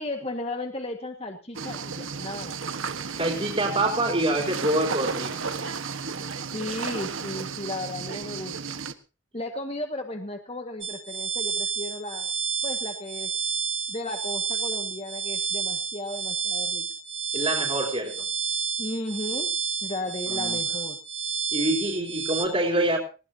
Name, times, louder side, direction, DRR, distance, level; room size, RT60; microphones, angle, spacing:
voice 1, 0.0-2.6 6.5-8.8 9.3-12.3 12.6-13.3 13.9-16.9 18.8-19.5 19.8-21.0, left 1 dB, 30° left, 4 dB, 1.7 m, -35 dB
sound 1, 1.5-8.9, right 5 dB, 85° right, 1.4 m, -33 dB
voice 2, 3.2-5.6 17.3-18.2 20.3-20.6 21.5-23.0, right 1 dB, 30° right, -1 dB, 3.5 m, -26 dB
sound 2, 10.8-22.5, right 6 dB, 65° right, 2.7 m, -30 dB
20.0 x 18.5 x 2.8 m, 0.33 s
head